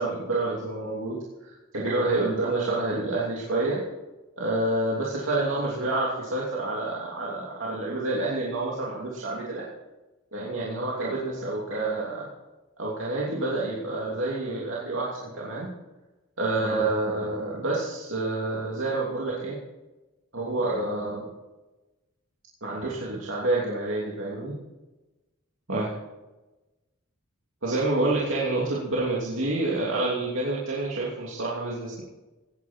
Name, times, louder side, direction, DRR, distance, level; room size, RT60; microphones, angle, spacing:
voice 1, 0.0-3.8 4.4-9.7 10.3-12.3 12.8-15.7 16.4-19.6 20.3-21.3 22.6-24.5 25.7-25.9 27.6-32.0, right 2 dB, 75° right, -5 dB, 2.9 m, -28 dB
18.0 x 9.5 x 4.5 m, 1.1 s
head